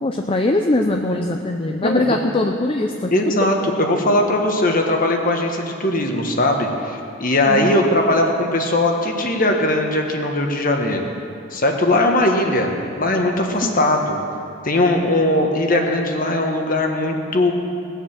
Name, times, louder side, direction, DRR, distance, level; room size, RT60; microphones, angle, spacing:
voice 1, 0.0-3.1 7.5-7.8 13.6-13.7, left 2 dB, 25° left, 3 dB, 0.5 m, -21 dB
voice 2, 1.8-2.2 3.1-11.1 11.5-14.2 14.6-17.5, left 1 dB, 40° left, 3 dB, 1.4 m, -19 dB
19.0 x 7.2 x 7.4 m, 2.6 s
head